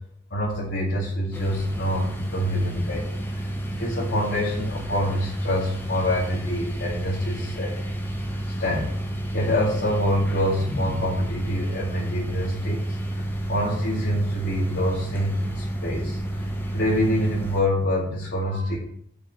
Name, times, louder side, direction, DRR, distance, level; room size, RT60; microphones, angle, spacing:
voice 1, 0.3-7.8 8.4-8.9 9.3-13.2 13.5-18.8, left 1 dB, 60° left, -6 dB, 2.1 m, -26 dB
sound 1, 1.3-17.6, right 1 dB, 10° left, 1.0 m, -30 dB
6.7 x 5.4 x 6.2 m, 0.67 s
head